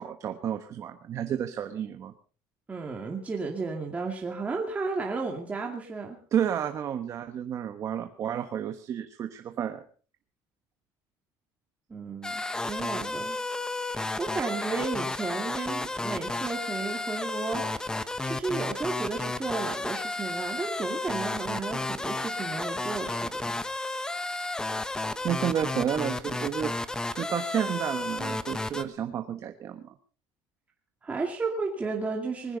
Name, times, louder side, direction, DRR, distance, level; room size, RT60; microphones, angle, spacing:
voice 1, 0.0-2.1 6.3-9.8 25.2-29.9, right 9 dB, 40° right, 7 dB, 1.3 m, -31 dB
voice 2, 2.7-6.2 11.9-13.4 13.7-23.6 31.0-32.6, right 4 dB, 15° right, 0 dB, 2.3 m, -33 dB
sound 1, 12.2-28.8, left 2 dB, 10° left, 1.0 m, -32 dB
20.5 x 15.5 x 4.0 m, 0.39 s
cardioid pair, 145°, 8 cm